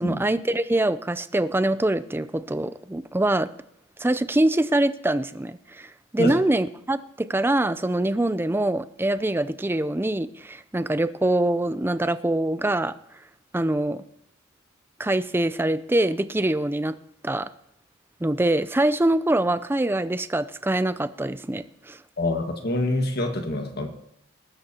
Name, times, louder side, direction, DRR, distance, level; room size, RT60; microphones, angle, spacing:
voice 1, 0.0-3.5 4.0-12.9 13.5-14.0 15.0-16.9 17.2-17.5 18.2-22.0, right 1 dB, 10° right, 13 dB, 0.4 m, -24 dB
voice 2, 22.2-23.9, left 1 dB, 50° left, 4 dB, 1.6 m, -26 dB
20.5 x 12.0 x 2.9 m, 0.76 s
head